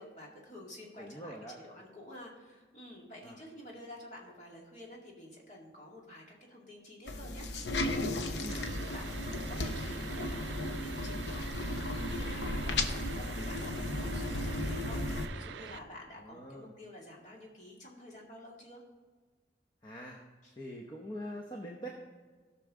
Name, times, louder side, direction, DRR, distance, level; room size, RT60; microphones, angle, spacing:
voice 1, 0.0-18.8 20.4-20.6, left 1 dB, 40° left, -2 dB, 2.2 m, -50 dB
voice 2, 1.0-1.6 3.2-3.4 8.4-8.6 16.2-16.7 19.8-20.2 20.6-21.9, equal, 25° left, 0 dB, 0.8 m, -43 dB
sound 1, 7.1-15.3, left 1 dB, 80° left, 0.8 m, -35 dB
sound 2, 8.5-15.8, right 8 dB, 90° right, 0.4 m, -46 dB
17.0 x 6.0 x 3.7 m, 1.4 s
head